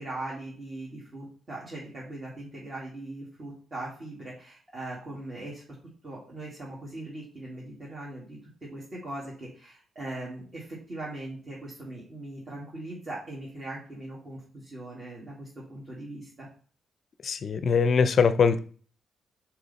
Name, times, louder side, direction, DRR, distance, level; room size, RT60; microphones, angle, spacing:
voice 1, 0.0-5.6 6.0-16.5, right 2 dB, 30° right, -6 dB, 2.2 m, -40 dB
voice 2, 17.2-18.6, left 5 dB, 45° left, 11 dB, 0.5 m, -22 dB
6.7 x 4.8 x 4.1 m, 0.43 s
cardioid pair, 150°, 0 cm